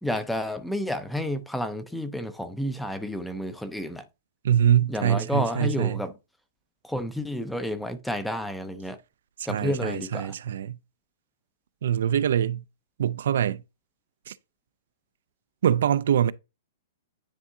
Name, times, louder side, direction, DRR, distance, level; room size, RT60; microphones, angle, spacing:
voice 1, 0.0-4.0 4.9-6.1 6.8-9.0 9.5-10.3, left 1 dB, ahead, 0.4 m, -30 dB
voice 2, 4.4-6.0 9.4-10.8 11.8-12.6 13.0-13.6 14.3-14.4 15.6-16.3, right 9 dB, 65° right, 0.3 m, -24 dB
9.8 x 3.5 x 2.7 m
hypercardioid pair, 170°, 0 cm